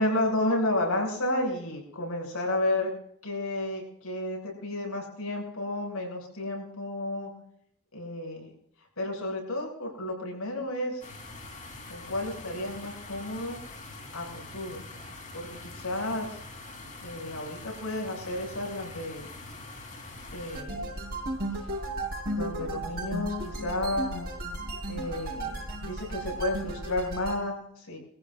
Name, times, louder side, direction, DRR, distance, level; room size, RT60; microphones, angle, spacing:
voice 1, 0.0-2.9 3.2-7.3 7.9-8.5 9.0-11.0 11.9-13.6 14.1-14.8 15.3-16.4 17.0-19.3 20.3-20.9 22.3-24.3 24.9-28.0, left 1 dB, 90° left, -1 dB, 7.1 m, -32 dB
sound 1, 11.0-20.6, left 2 dB, 35° left, 3.3 m, -44 dB
sound 2, 20.5-27.4, right 1 dB, 45° right, 4.4 m, -34 dB
24.0 x 15.0 x 2.5 m, 0.68 s
head